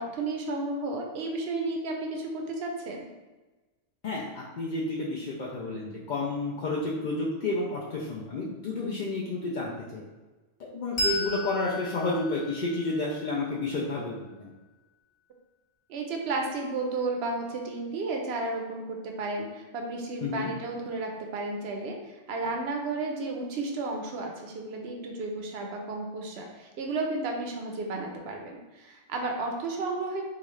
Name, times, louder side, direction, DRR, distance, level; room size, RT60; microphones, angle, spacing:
voice 1, 0.0-3.1 15.9-30.2, right 3 dB, 65° right, 1 dB, 0.7 m, -33 dB
voice 2, 4.0-10.0 10.6-14.5 20.2-20.5, left 2 dB, 70° left, -5 dB, 0.4 m, -31 dB
Bell, 11.0-14.0, left 1 dB, 50° left, 1.0 m, -35 dB
3.9 x 2.4 x 3.1 m, 1.2 s
omnidirectional pair, 1.3 m